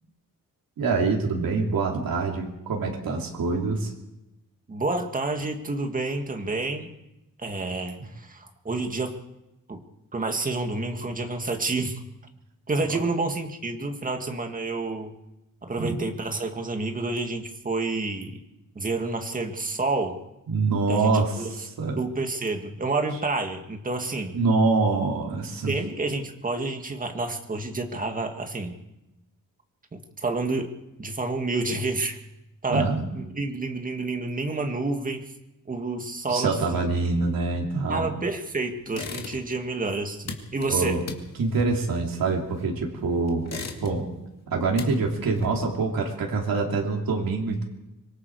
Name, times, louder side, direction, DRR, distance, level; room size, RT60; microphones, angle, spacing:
voice 1, 0.8-3.9 15.8-16.0 20.5-21.5 21.8-22.0 24.3-25.7 32.7-33.0 36.3-38.1 40.7-41.0 41.4-43.5 43.8-44.0 44.5-47.6, right 3 dB, 85° right, 0 dB, 3.2 m, -25 dB
voice 2, 4.7-6.9 7.4-9.2 9.7-9.8 10.1-12.0 12.7-15.2 15.6-18.4 18.8-20.2 20.9-21.5 22.0-24.4 25.7-28.8 29.9-30.7 31.0-32.2 32.6-35.2 35.7-36.6 37.9-41.0, right 3 dB, 25° right, 4 dB, 1.9 m, -29 dB
sound 1, 38.9-39.7 39.9-42.9 43.3-44.2 44.5-45.9, left 4 dB, 50° left, 2.4 m, -38 dB
25.5 x 22.5 x 4.8 m, 0.92 s
wide cardioid pair, 175°, 34 cm